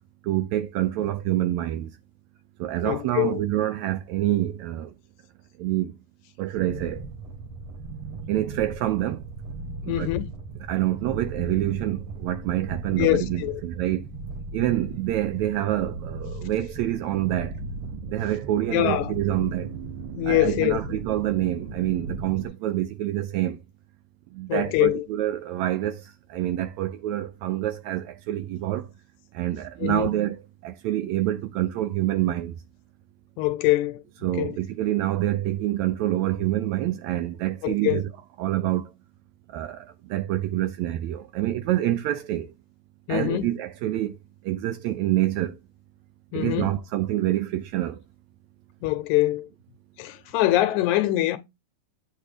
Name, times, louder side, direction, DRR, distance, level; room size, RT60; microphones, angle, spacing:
voice 1, 0.2-1.9 2.6-4.9 5.6-6.0 6.4-7.1 8.3-9.2 9.8-10.1 10.7-14.1 14.5-17.6 18.1-19.7 20.3-23.6 24.3-28.9 29.3-32.6 34.2-38.1 38.4-38.9 39.5-42.5 43.1-44.2 44.4-45.6 46.3-48.0, right 14 dB, 75° right, 1.7 m, -27 dB
voice 2, 2.8-3.4 9.9-10.3 13.0-13.6 18.7-19.1 20.2-21.0 24.5-25.1 29.8-30.1 33.4-34.0 34.4-34.6 37.6-38.0 43.1-43.5 46.3-46.7 48.8-49.5 50.0-51.4, left 16 dB, 80° left, 1.9 m, -24 dB
sound 1, 6.6-22.5, right 3 dB, 55° right, 1.7 m, -37 dB
8.2 x 3.2 x 5.0 m
omnidirectional pair, 3.7 m